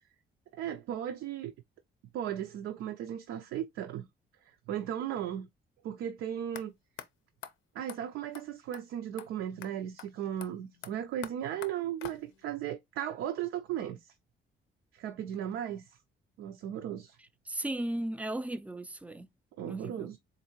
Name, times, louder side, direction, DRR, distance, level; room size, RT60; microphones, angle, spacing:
voice 1, 0.5-1.5 2.1-4.0 4.7-5.5 5.8-6.7 7.7-14.0 14.9-15.8 16.4-17.2 19.6-20.2, right 10 dB, 90° right, 0.5 m, -36 dB
sound 1, 6.5-6.6 7.0-7.1 7.4-7.5 7.9-8.0 8.3-8.4 8.7-8.8 9.2-9.3 9.6-9.7 10.0-10.1 10.4-12.5, left 9 dB, 80° left, 0.5 m, -46 dB
voice 2, 17.5-19.3 19.7-20.1, right 1 dB, 5° right, 0.3 m, -36 dB
3.8 x 2.5 x 2.8 m
cardioid pair, 90°, 20 cm